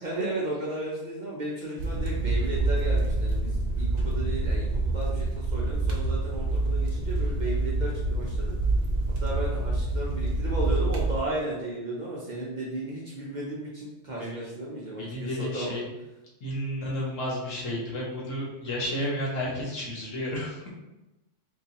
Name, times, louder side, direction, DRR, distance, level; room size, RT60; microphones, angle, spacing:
voice 1, 0.0-8.5 9.2-15.8, right 1 dB, 45° right, -5 dB, 0.7 m, -34 dB
sound 1, 1.8-11.2, right 2 dB, 65° right, 1.0 m, -27 dB
voice 2, 15.0-15.9 16.4-20.7, left 1 dB, 75° left, -4 dB, 1.4 m, -32 dB
3.8 x 2.7 x 2.8 m, 0.99 s
omnidirectional pair, 1.3 m